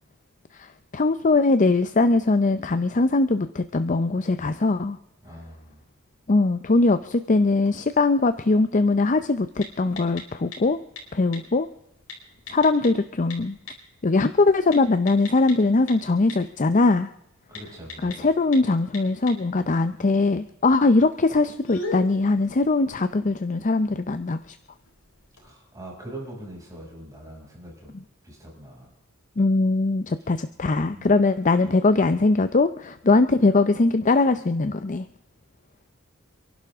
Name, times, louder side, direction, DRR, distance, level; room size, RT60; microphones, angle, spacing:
voice 1, 0.9-5.0 6.3-10.8 11.1-11.7 12.5-13.6 14.0-17.1 18.0-24.5 29.4-35.1, left 3 dB, 35° left, 10 dB, 0.6 m, -21 dB
voice 2, 5.2-5.8 17.5-18.3 25.4-28.0 28.2-28.9 30.9-31.1, right 1 dB, 15° right, -3 dB, 6.4 m, -42 dB
sound 1, 7.2-25.5, left 2 dB, 70° left, 4.4 m, -44 dB
28.5 x 11.5 x 3.6 m, 0.83 s
head